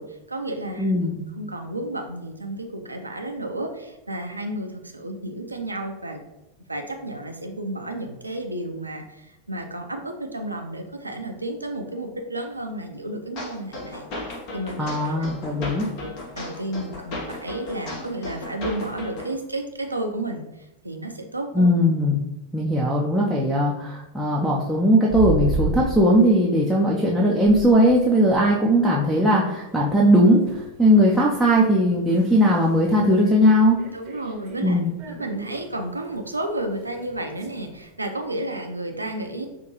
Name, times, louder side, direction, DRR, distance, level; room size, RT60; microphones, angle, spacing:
voice 1, 0.0-1.0 1.3-6.2 6.7-15.7 16.0-21.7 33.9-34.8 35.1-39.5, right 1 dB, 80° right, 4 dB, 0.5 m, -32 dB
voice 2, 0.8-1.2 14.8-15.9 21.5-22.2 22.5-33.8 34.6-34.9, equal, ahead, -6 dB, 0.5 m, -19 dB
sound 1, 13.4-19.3, left 2 dB, 45° left, 1.0 m, -35 dB
sound 2, 25.1-26.1 26.6-26.8 27.1-37.9, right 3 dB, 40° right, 0.8 m, -34 dB
5.5 x 2.5 x 3.0 m, 0.97 s
figure-of-eight pair, 90°, 0 cm